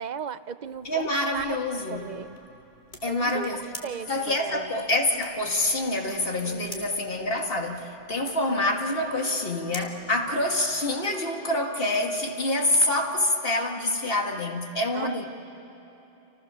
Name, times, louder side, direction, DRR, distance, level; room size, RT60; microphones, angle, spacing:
voice 1, 0.0-1.6 1.9-2.4 3.1-4.7 6.4-6.9 14.9-15.2, right 6 dB, 50° right, 0.8 m, -36 dB
sound 1, 0.6-11.0, left 1 dB, 45° left, 2.7 m, -49 dB
voice 2, 0.8-2.1 3.0-3.6 4.1-15.3, left 1 dB, 65° left, 2.3 m, -26 dB
29.5 x 29.0 x 6.9 m
omnidirectional pair, 1.0 m